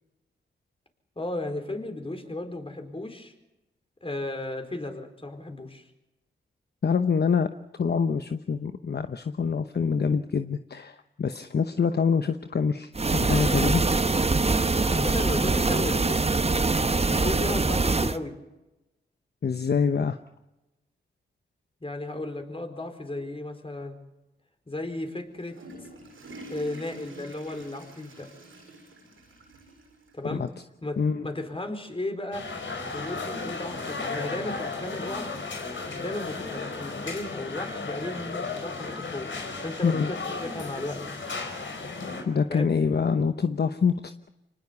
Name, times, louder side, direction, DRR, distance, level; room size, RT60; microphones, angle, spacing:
voice 1, 1.2-3.3 4.0-5.8 14.8-16.6 17.1-18.4 21.8-24.0 24.7-25.9 26.5-28.3 30.1-30.5 30.8-32.5 32.9-35.3 36.0-39.3 39.6-41.1 42.5-42.7, left 2 dB, 25° left, 5 dB, 4.5 m, -35 dB
voice 2, 6.8-7.5 7.8-13.8 19.4-20.2 30.2-30.5 31.0-31.3 39.8-40.1 42.2-44.3, left 6 dB, 55° left, 9 dB, 1.0 m, -25 dB
sound 1, 12.9-18.2, right 3 dB, 30° right, 1.1 m, -23 dB
Water / Toilet flush, 25.2-30.2 30.5-30.6 31.3-31.4 32.7-32.8, right 1 dB, 85° right, 7.0 m, -47 dB
sound 2, 32.3-42.2, left 3 dB, 70° left, 4.5 m, -35 dB
25.5 x 19.5 x 7.0 m, 0.98 s
cardioid pair, 55°, 20 cm